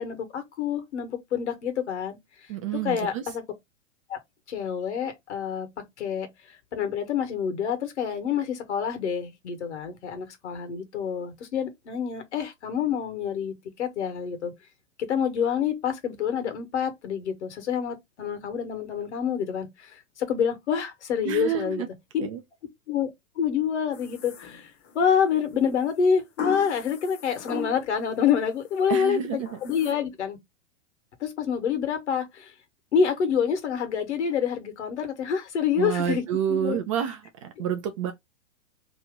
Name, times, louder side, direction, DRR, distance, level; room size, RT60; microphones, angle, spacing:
voice 1, 0.0-2.2 2.8-3.4 4.1-4.2 4.5-5.7 6.0-6.3 6.7-14.5 15.1-19.9 20.3-21.8 22.1-22.3 22.9-23.1 23.4-24.7 24.9-30.4 31.2-32.5 32.9-36.2 36.5-36.8, left 7 dB, 65° left, 1.4 m, -27 dB
voice 2, 2.5-3.3 21.2-21.9 22.2-22.4 28.9-29.6 35.8-38.1, right 9 dB, 25° right, 0.4 m, -29 dB
sound 1, 23.9-25.0 26.4-28.1 28.5-28.9 29.5-29.9, left 7 dB, 25° left, 0.9 m, -37 dB
3.0 x 2.8 x 3.5 m
figure-of-eight pair, 110°, 38 cm